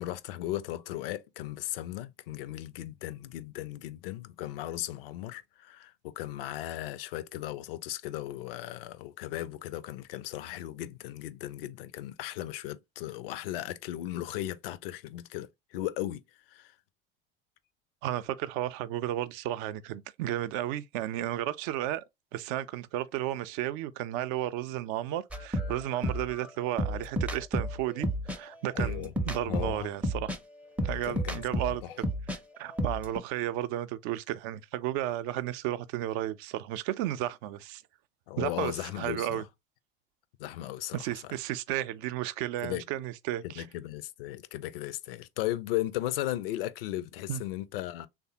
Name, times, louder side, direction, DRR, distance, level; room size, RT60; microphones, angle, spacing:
voice 1, 0.0-16.2 16.5-16.7 28.7-29.1 29.5-29.9 30.9-31.9 38.3-39.4 40.4-41.0 41.2-41.3 42.6-42.8 43.4-48.1, left 14 dB, 70° left, 0.5 m, -36 dB
voice 2, 18.0-22.0 22.3-30.3 30.8-31.8 32.3-37.8 38.4-39.4 40.9-43.6 47.3-47.4, right 13 dB, 55° right, 0.5 m, -33 dB
sound 1, 25.3-32.4 32.7-33.2, equal, 5° right, 0.5 m, -32 dB
3.4 x 2.0 x 2.8 m
figure-of-eight pair, 65°, 30 cm